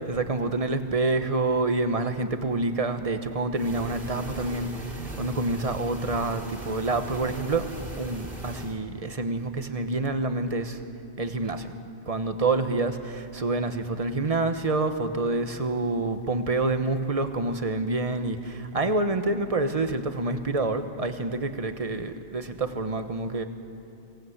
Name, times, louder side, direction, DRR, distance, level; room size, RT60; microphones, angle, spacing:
voice 1, 0.0-7.7 8.0-10.8 11.2-11.7 12.1-23.5, right 2 dB, 35° right, 8 dB, 1.2 m, -27 dB
sound 1, 3.5-8.8, right 1 dB, 55° right, 3.0 m, -39 dB
24.5 x 18.0 x 8.0 m, 2.6 s
omnidirectional pair, 1.1 m